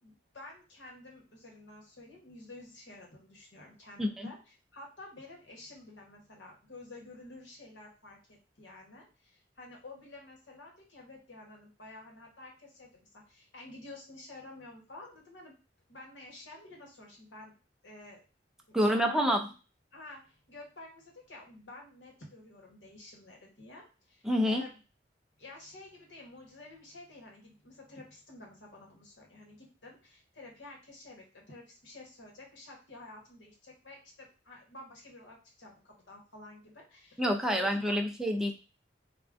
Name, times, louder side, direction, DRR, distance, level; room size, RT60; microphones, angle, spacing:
voice 1, 0.0-15.5 15.9-17.5 17.8-18.2 18.7-19.3 19.9-24.8 25.4-38.0, left 2 dB, 80° left, 0 dB, 1.1 m, -51 dB
voice 2, 4.0-4.3 18.7-19.5 24.2-24.6 37.2-38.5, equal, 5° right, 3 dB, 0.3 m, -27 dB
3.6 x 2.2 x 2.4 m, 0.33 s
head